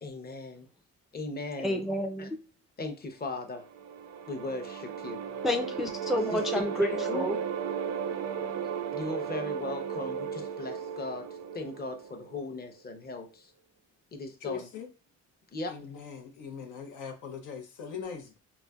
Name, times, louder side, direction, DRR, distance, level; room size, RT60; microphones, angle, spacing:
voice 1, 0.0-0.7 1.1-1.9 2.2-2.3 2.8-3.6 4.3-5.2 6.3-7.3 8.9-11.3 11.5-13.5 14.1-14.7 15.5-15.7, left 2 dB, 30° left, 0.7 m, -37 dB
voice 2, 1.6-2.4 5.4-7.4, left 1 dB, ahead, 0.4 m, -29 dB
sound 1, 3.4-12.6, right 7 dB, 60° right, 0.4 m, -35 dB
voice 3, 14.4-14.9 15.7-18.4, left 6 dB, 85° left, 0.8 m, -40 dB
4.0 x 2.2 x 2.3 m
cardioid pair, 90°, 30 cm